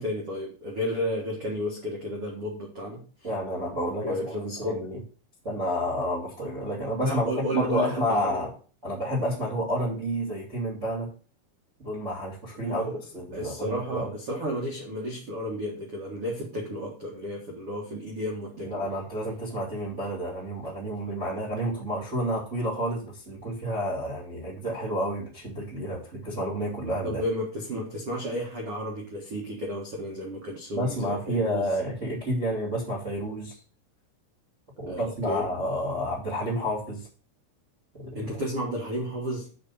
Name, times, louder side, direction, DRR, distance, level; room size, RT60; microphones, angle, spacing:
voice 1, 0.0-3.0 4.0-4.9 7.0-8.5 12.6-13.0 13.3-18.8 27.0-31.7 34.9-35.5 38.1-39.5, equal, 90° right, -1 dB, 1.2 m, -32 dB
voice 2, 3.2-5.0 5.4-8.5 8.8-11.1 11.8-14.1 18.6-27.2 30.7-33.5 34.8-37.1 37.9-38.4, equal, 30° right, -2 dB, 1.5 m, -30 dB
6.6 x 5.6 x 7.1 m, 0.39 s
omnidirectional pair, 5.7 m